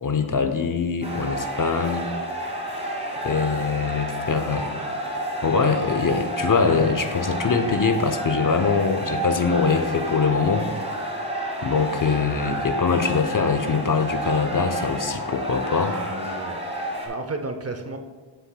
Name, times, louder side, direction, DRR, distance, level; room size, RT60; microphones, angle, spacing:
voice 1, 0.0-2.1 3.2-4.7 5.4-10.7 11.6-15.9, left 5 dB, 45° left, 7 dB, 0.6 m, -23 dB
sound 1, 1.0-17.1, right 1 dB, 15° right, 1.2 m, -30 dB
voice 2, 15.7-16.6 17.0-18.0, right 3 dB, 35° right, 6 dB, 0.5 m, -33 dB
7.1 x 7.0 x 2.2 m, 1.4 s
wide cardioid pair, 70°, 45 cm